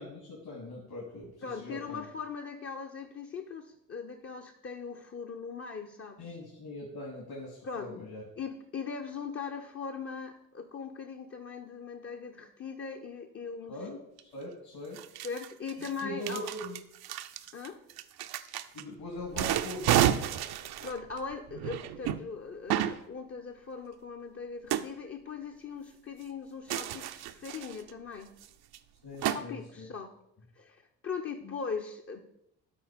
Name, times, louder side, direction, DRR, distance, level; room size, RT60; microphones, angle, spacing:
voice 1, 0.0-2.1 6.2-8.2 13.7-15.0 15.8-16.8 18.7-20.2 29.0-29.9 31.4-31.6, left 1 dB, 55° left, -2 dB, 2.6 m, -41 dB
voice 2, 1.4-6.4 7.6-7.9 8.4-13.8 15.2-16.5 17.5-17.8 20.8-28.3 29.2-30.1 30.5-32.2, left 5 dB, 30° left, 3 dB, 0.9 m, -40 dB
sound 1, 14.2-14.3 14.9-18.8 19.2-22.2 22.7-23.0 24.7-24.8 26.7-27.9 28.4-28.5 28.7-28.8 29.2-29.4, right 12 dB, 55° right, 0.7 m, -31 dB
12.5 x 4.2 x 5.2 m, 0.82 s
hypercardioid pair, 50°, 45 cm